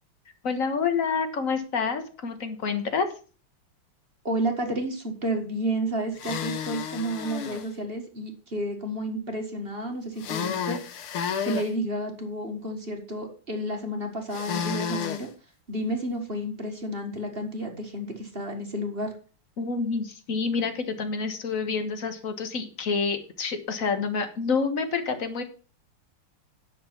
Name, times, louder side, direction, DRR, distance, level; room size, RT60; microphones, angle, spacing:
voice 1, 0.4-3.1 19.6-25.4, left 5 dB, 40° left, 8 dB, 1.6 m, -28 dB
voice 2, 4.2-10.8 11.4-15.3 15.7-19.1, right 1 dB, 30° right, 3 dB, 1.7 m, -31 dB
sound 1, 6.2-7.7 10.2-11.7 14.3-15.2, left 7 dB, 75° left, 1.9 m, -31 dB
9.7 x 6.9 x 5.9 m, 0.37 s
omnidirectional pair, 2.4 m